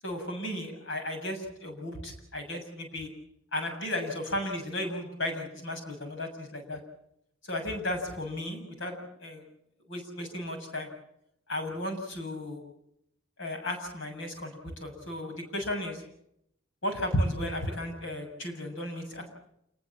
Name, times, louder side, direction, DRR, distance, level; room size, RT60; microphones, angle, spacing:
voice 1, 0.0-3.1 3.5-6.8 7.4-9.4 9.9-10.9 11.5-12.6 13.4-16.0 16.8-19.3, left 1 dB, 65° left, 4 dB, 7.3 m, -34 dB
28.0 x 20.0 x 7.4 m, 0.76 s
head